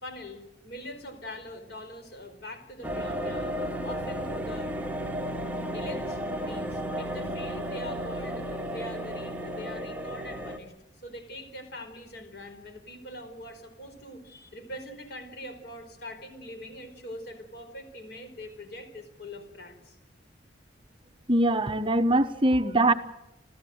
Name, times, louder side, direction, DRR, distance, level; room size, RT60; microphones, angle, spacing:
voice 1, 0.0-3.6 3.8-4.7 5.7-10.7 11.0-20.0, left 1 dB, 55° left, 4.5 m, -43 dB
sound 1, 2.8-10.6, equal, 10° right, 1.5 m, -33 dB
voice 2, 21.3-22.9, right 1 dB, 25° right, 0.8 m, -22 dB
29.0 x 14.0 x 7.8 m
head